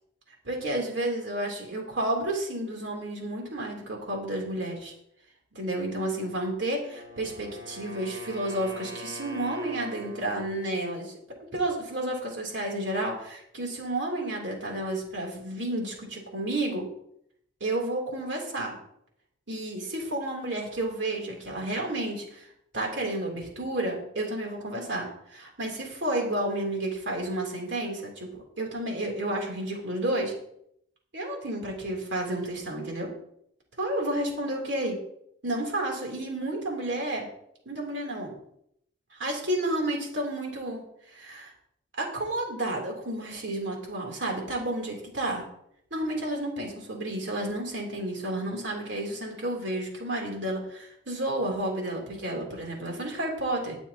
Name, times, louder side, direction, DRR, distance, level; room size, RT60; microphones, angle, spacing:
voice 1, 0.4-4.9 5.5-11.1 11.5-16.9 17.6-18.8 19.5-22.5 22.7-30.3 31.1-33.1 33.8-35.0 35.4-37.3 37.7-38.3 39.1-40.8 41.1-41.5 42.0-45.4 45.9-53.8, right 1 dB, 70° right, 0 dB, 3.3 m, -31 dB
Wind instrument woodwind instrument, 6.7-10.6, right 1 dB, 20° right, 5.1 m, -43 dB
20.0 x 7.0 x 2.9 m, 0.73 s
head